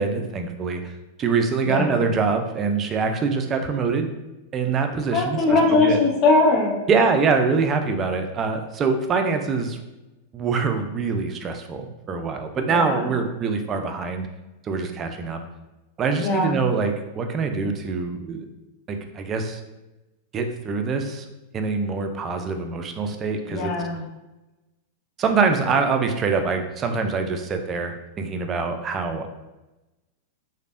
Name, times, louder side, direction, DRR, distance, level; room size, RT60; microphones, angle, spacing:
voice 1, 0.0-4.1 4.5-6.0 6.9-9.8 10.3-14.3 14.6-15.4 16.0-18.4 18.9-19.6 20.3-21.3 21.5-23.7 25.2-29.3, right 4 dB, 30° right, 6 dB, 0.4 m, -24 dB
voice 2, 1.7-2.0 5.1-6.8 12.7-13.0 16.2-16.6 23.5-24.1, left 3 dB, 45° left, -2 dB, 0.7 m, -20 dB
3.2 x 2.1 x 2.5 m, 1.0 s
hypercardioid pair, 100°, 0 cm